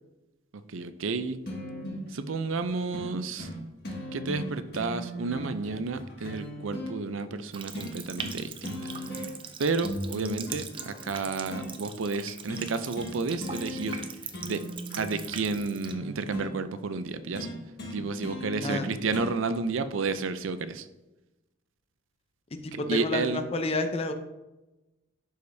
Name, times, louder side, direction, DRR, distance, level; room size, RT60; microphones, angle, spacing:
voice 1, 0.7-1.4 2.1-3.5 4.1-8.9 9.6-14.0 14.4-14.7 15.0-17.5 17.9-20.9 22.7-23.5, right 4 dB, 85° right, 11 dB, 0.5 m, -31 dB
sound 1, 1.5-2.1 2.9-3.1 3.4-3.6 3.8-6.9 7.7-8.4 8.6-9.5 9.8-11.7 12.5-12.7 13.0-13.2 13.4-14.1 14.3-16.5 17.3-19.3 20.4-20.5, equal, 55° left, 1.8 m, -38 dB
Water tap faucet, 7.5-15.9, right 6 dB, 25° right, 0.5 m, -41 dB
voice 2, 22.6-24.1, left 2 dB, 30° left, 7 dB, 0.6 m, -29 dB
11.0 x 5.0 x 2.7 m, 1.0 s
head